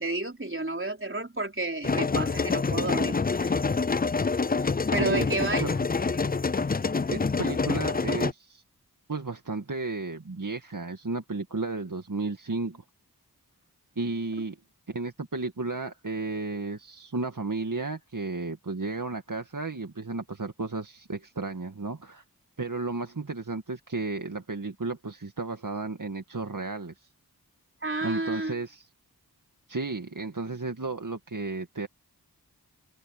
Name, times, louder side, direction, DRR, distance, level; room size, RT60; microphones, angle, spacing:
voice 1, 0.0-3.5 4.9-5.8 27.8-28.6, right 2 dB, 35° right, 4.0 m, -31 dB
sound 1, 1.8-8.3, left 4 dB, 25° left, 0.4 m, -26 dB
voice 2, 4.6-5.7 7.1-8.6 9.1-12.8 14.0-14.6 14.9-22.2 22.6-27.1 28.0-28.9 29.7-31.9, right 3 dB, 55° right, 2.1 m, -33 dB
open air
wide cardioid pair, 50°, 38 cm